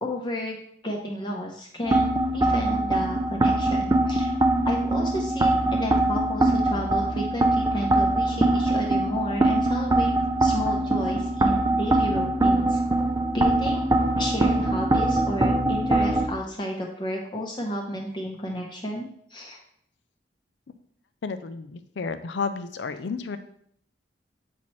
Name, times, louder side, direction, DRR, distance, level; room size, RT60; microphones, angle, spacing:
voice 1, 0.0-4.3 4.6-10.1 10.4-12.8 13.3-13.8 14.2-19.6, equal, 25° left, -1 dB, 0.7 m, -32 dB
sound 1, 1.9-16.3, right 2 dB, 20° right, 0.4 m, -23 dB
voice 2, 21.2-23.4, left 5 dB, 85° left, 11 dB, 0.5 m, -31 dB
7.3 x 4.2 x 3.1 m, 0.67 s
head